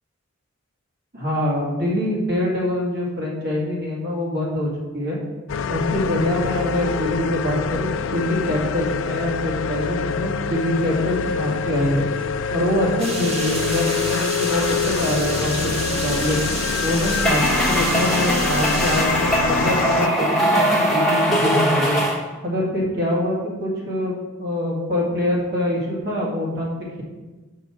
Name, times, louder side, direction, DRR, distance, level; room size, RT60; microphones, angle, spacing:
voice 1, 1.1-5.2 5.7-12.1 12.5-16.4 16.8-22.0 22.4-24.1 24.4-27.0, left 1 dB, 55° right, -4 dB, 2.1 m, -24 dB
sound 1, 5.5-20.1, left 5 dB, 65° left, 0.3 m, -26 dB
sound 2, 13.0-19.1, right 2 dB, 30° right, 1.1 m, -30 dB
sound 3, 17.2-22.2, equal, ahead, 1.0 m, -21 dB
5.7 x 5.2 x 6.2 m, 1.2 s
head